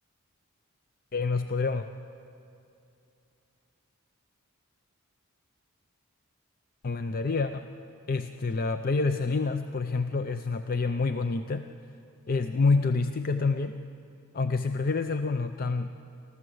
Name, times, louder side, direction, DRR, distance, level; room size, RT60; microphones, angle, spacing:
voice 1, 1.1-1.9 6.8-7.7 8.1-11.7 12.3-13.8 14.3-16.0, left 4 dB, 40° left, 8 dB, 0.5 m, -27 dB
25.0 x 14.5 x 7.9 m, 2.7 s
head